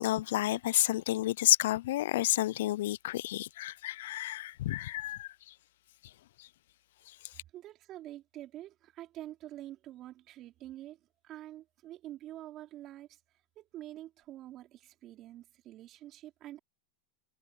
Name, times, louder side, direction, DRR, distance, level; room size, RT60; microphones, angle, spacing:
voice 1, 0.0-5.3, left 15 dB, 80° left, 0.4 m, -30 dB
voice 2, 7.5-13.2 13.6-16.6, right 14 dB, 40° right, 4.7 m, -47 dB
supercardioid pair, 140°, 0 cm